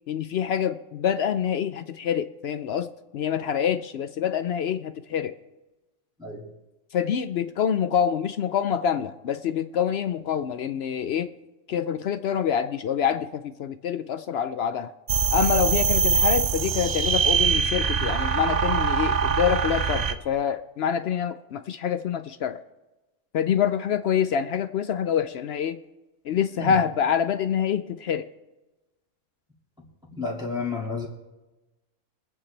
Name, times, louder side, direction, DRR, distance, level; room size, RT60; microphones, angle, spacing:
voice 1, 0.1-5.3 6.9-11.3 11.7-14.9 15.3-22.6 23.3-25.8 26.2-28.3, left 8 dB, 65° left, 11 dB, 0.6 m, -26 dB
sound 1, 15.1-20.1, right 6 dB, 55° right, 0.4 m, -23 dB
voice 2, 26.3-26.7 30.1-31.1, left 4 dB, 5° right, -4 dB, 2.1 m, -31 dB
24.0 x 8.6 x 3.3 m, 1.1 s
omnidirectional pair, 1.4 m